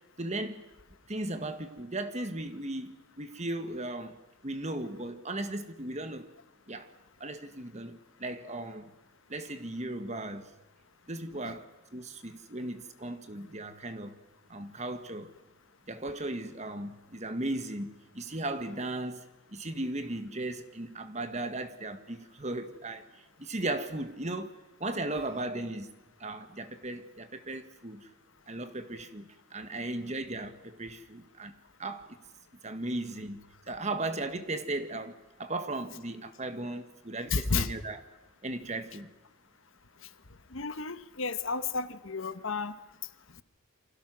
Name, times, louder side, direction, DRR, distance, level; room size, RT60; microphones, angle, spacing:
voice 1, 0.2-0.6 1.1-6.3 6.7-6.9 7.2-8.9 9.3-10.5 11.1-14.2 14.5-15.3 15.9-25.9 26.2-28.1 28.5-31.5 31.8-32.2 32.6-38.0 38.4-39.1, right 2 dB, 35° right, 1.7 m, -37 dB
voice 2, 37.3-37.7 40.5-42.8, left 4 dB, 70° left, 1.2 m, -32 dB
29.0 x 24.5 x 6.2 m
head